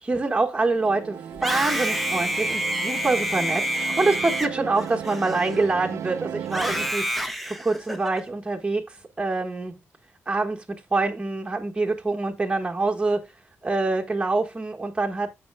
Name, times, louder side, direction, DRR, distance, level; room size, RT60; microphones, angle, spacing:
voice 1, 0.0-9.8 10.3-10.6 10.9-13.2 13.6-15.3, right 3 dB, 20° right, 1.4 m, -25 dB
sound 1, 0.6-6.9, right 9 dB, 70° right, 0.5 m, -36 dB
Screaming, 1.3-5.8 6.5-8.2, equal, ahead, 1.0 m, -28 dB
15.0 x 5.2 x 2.2 m
wide cardioid pair, 145°, 5 cm